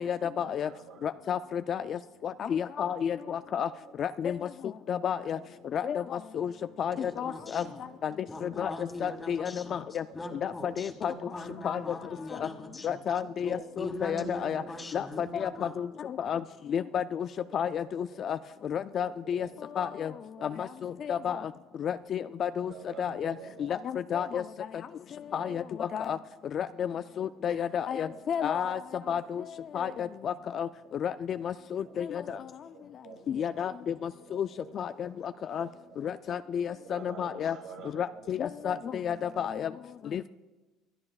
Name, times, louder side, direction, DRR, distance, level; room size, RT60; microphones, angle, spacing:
voice 1, 0.0-0.7 1.0-2.0 2.2-3.7 4.0-4.4 4.9-5.4 5.7-6.0 6.3-6.5 6.8-7.6 8.0-8.1 8.4-8.7 9.0-10.0 10.4-11.1 11.6-11.8 12.8-14.6 14.9-15.5 15.8-15.9 16.2-16.4 16.7-17.3 17.5-18.4 18.7-19.5 19.8-20.1 20.4-21.4 21.8-22.7 23.0-23.3 23.6-24.4 25.3-25.6 25.9-26.2 26.5-28.8 29.1-29.4 29.7-30.7 31.0-32.2 33.3-33.7 34.3-34.5 34.8-35.1 35.5-35.7 36.0-37.5 38.0-39.7 40.1-40.2, left 8 dB, 40° left, 12 dB, 0.3 m, -31 dB
voice 2, 0.6-1.1 3.2-3.3 3.7-3.8 5.3-5.7 6.8-7.0 7.7-8.0 11.1-11.3 12.0-12.1 13.5-13.7 14.6-14.8 17.4-17.7 18.1-18.3 19.2-19.5 20.1-20.5 22.6-23.7 25.3-25.6 25.9-26.0 28.0-28.3 29.0-29.1 29.8-30.0 31.8-31.9 32.3-33.5 34.3-34.8 35.5-36.1 36.8-38.3 38.6-38.8 39.3-39.7, right 7 dB, 80° right, -3 dB, 2.5 m, -50 dB
voice 3, 7.0-7.8 8.3-9.8 10.1-13.0 13.4-15.7, left 2 dB, 15° left, 4 dB, 1.9 m, -41 dB
26.0 x 10.5 x 2.4 m, 1.2 s
cardioid pair, 125°, 0 cm